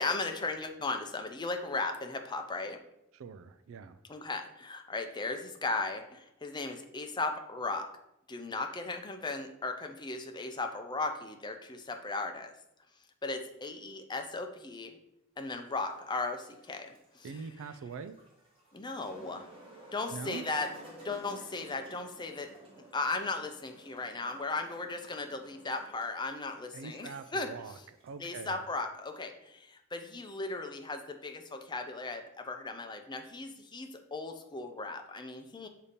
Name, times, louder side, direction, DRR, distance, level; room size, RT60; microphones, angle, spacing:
voice 1, 0.0-2.8 4.1-7.9 8.3-12.5 13.2-15.0 15.4-17.3 18.7-19.5 19.9-20.7 21.0-22.5 22.9-27.5 28.2-35.7, left 3 dB, 20° left, 5 dB, 0.6 m, -36 dB
voice 2, 3.1-4.0 17.2-18.2 20.1-20.5 26.7-28.6, right 5 dB, 65° right, 11 dB, 0.3 m, -43 dB
sound 1, 15.5-28.5, right 1 dB, 25° right, 1.5 m, -54 dB
6.6 x 2.8 x 5.1 m, 0.81 s
head